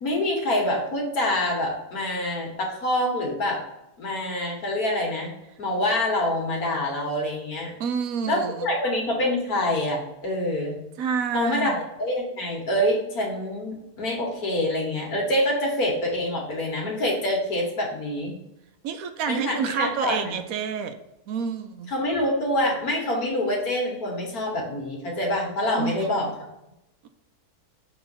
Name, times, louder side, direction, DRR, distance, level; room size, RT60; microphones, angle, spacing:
voice 1, 0.0-3.6 4.0-7.7 8.3-10.8 11.3-18.4 19.3-20.3 21.9-26.3, left 1 dB, 75° left, -1 dB, 1.9 m, -26 dB
voice 2, 7.8-8.7 11.0-11.8 18.8-20.9 21.3-21.9 25.7-26.3 27.0-27.1, right 6 dB, 70° right, 8 dB, 1.0 m, -28 dB
6.6 x 3.0 x 5.5 m, 0.87 s
omnidirectional pair, 1.6 m